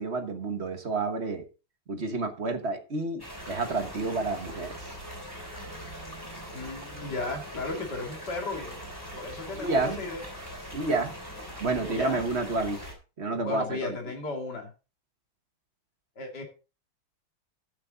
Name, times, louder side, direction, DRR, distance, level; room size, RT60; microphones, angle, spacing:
voice 1, 0.0-1.5 1.9-4.8 7.2-7.4 7.7-7.8 9.5-10.0 10.7-11.1 11.6-12.8 13.2-14.0, right 3 dB, 35° right, 1.3 m, -30 dB
sound 1, 3.2-12.9, equal, 10° left, 3.3 m, -41 dB
voice 2, 6.5-8.8 9.1-10.2 11.8-12.2 13.4-14.7 16.2-16.4, left 3 dB, 55° left, 3.1 m, -35 dB
12.0 x 8.3 x 3.8 m
omnidirectional pair, 2.3 m